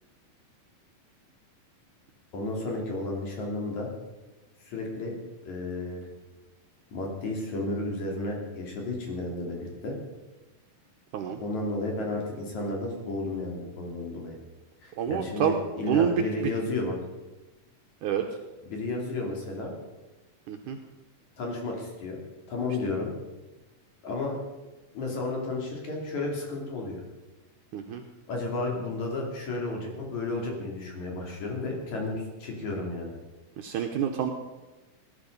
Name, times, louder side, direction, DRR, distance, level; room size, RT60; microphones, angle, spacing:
voice 1, 2.3-3.9 4.6-5.2 5.4-6.1 6.9-10.0 11.4-14.4 14.8-17.0 18.6-19.7 21.4-22.2 22.5-23.1 24.0-24.4 24.9-27.0 28.3-33.1, left 2 dB, 55° left, 0 dB, 4.1 m, -32 dB
voice 2, 15.0-15.6 15.9-16.2 18.0-18.3 20.5-20.8 27.7-28.0 33.6-34.3, right 8 dB, 70° right, 4 dB, 2.3 m, -27 dB
19.0 x 11.0 x 5.4 m, 1.1 s
omnidirectional pair, 4.0 m